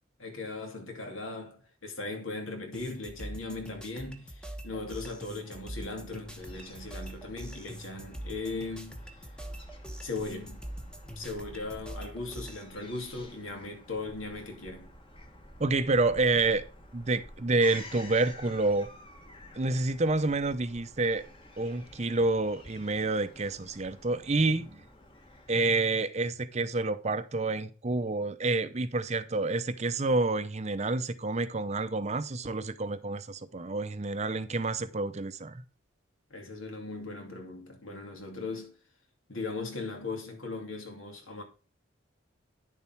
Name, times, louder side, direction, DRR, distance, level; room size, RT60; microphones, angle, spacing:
voice 1, 0.2-9.0 10.0-10.6 11.2-14.9 36.3-38.7 39.3-41.4, left 3 dB, 80° left, 2.6 m, -38 dB
sound 1, 2.7-12.6, right 1 dB, 5° left, 1.0 m, -43 dB
Fowl / Gull seagull, 6.1-26.0, left 1 dB, 25° left, 1.4 m, -51 dB
voice 2, 15.6-16.6 16.9-18.9 19.6-21.2 21.6-24.8 25.5-35.6, right 3 dB, 35° right, 0.6 m, -28 dB
10.0 x 7.0 x 4.5 m
head